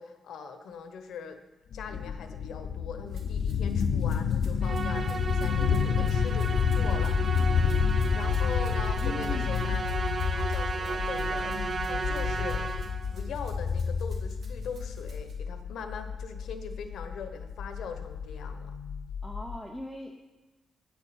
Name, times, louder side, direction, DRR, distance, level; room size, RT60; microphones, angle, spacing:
voice 1, 0.0-1.4 1.7-7.2 8.1-12.7 13.1-18.7, left 6 dB, 90° left, 8 dB, 1.0 m, -41 dB
sound 1, 1.7-19.6, left 6 dB, 70° left, 0.6 m, -29 dB
Rattle (instrument), 3.1-15.3, right 4 dB, 55° right, 2.9 m, -58 dB
Musical instrument, 4.6-13.1, right 4 dB, 35° right, 0.6 m, -34 dB
voice 2, 9.0-9.8 19.2-20.3, left 1 dB, ahead, 1 dB, 0.8 m, -40 dB
9.6 x 9.2 x 7.0 m, 1.1 s
wide cardioid pair, 165°, 0 cm